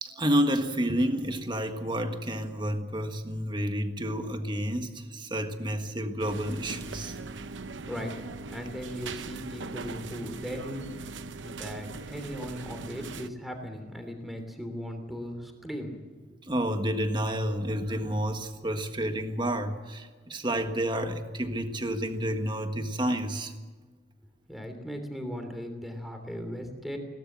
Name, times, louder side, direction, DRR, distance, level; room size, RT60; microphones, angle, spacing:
voice 1, 0.0-7.3 16.4-23.5, right 1 dB, 25° right, 7 dB, 1.6 m, -30 dB
sound 1, 6.2-13.3, right 3 dB, 90° right, 0.9 m, -40 dB
voice 2, 7.9-8.2 8.5-10.9 11.4-16.0 16.3-16.4 24.5-27.0, equal, ahead, 5 dB, 3.1 m, -38 dB
21.5 x 18.0 x 7.6 m, 1.4 s
head